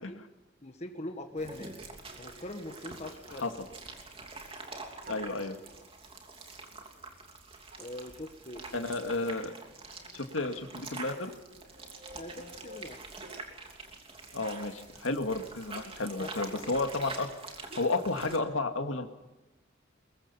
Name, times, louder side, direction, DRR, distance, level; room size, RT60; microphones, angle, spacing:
voice 1, 0.6-1.7 2.2-3.5 5.1-5.4 7.8-8.9 12.1-13.0 16.1-16.7, left 1 dB, 35° left, 4 dB, 1.5 m, -42 dB
sound 1, 0.9-4.0 4.7-5.8 6.6-6.7 7.7-7.9 8.8-13.6 14.4-14.5 15.6-15.9 17.6-17.9 18.2-18.4, right 1 dB, 45° right, 4.3 m, -53 dB
sound 2, 1.4-18.4, right 3 dB, 30° right, 3.0 m, -46 dB
voice 2, 5.1-5.6 8.7-9.5 10.1-11.3 14.3-17.3 17.7-19.1, left 3 dB, 80° left, 6 dB, 2.1 m, -32 dB
22.5 x 22.0 x 5.6 m, 1.1 s
head